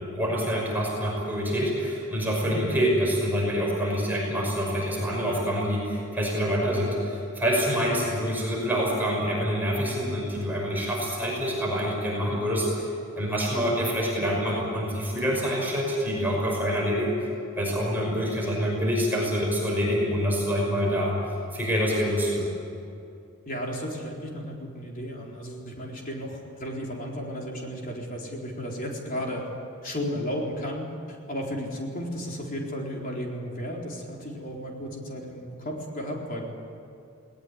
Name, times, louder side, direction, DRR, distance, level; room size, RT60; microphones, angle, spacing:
voice 1, 0.0-12.9 13.2-17.2 17.6-21.2 21.5-22.5, equal, 10° right, -3 dB, 5.7 m, -26 dB
voice 2, 23.5-29.4 29.8-36.4, equal, 40° left, -1 dB, 4.2 m, -34 dB
19.5 x 19.5 x 9.8 m, 2.5 s
head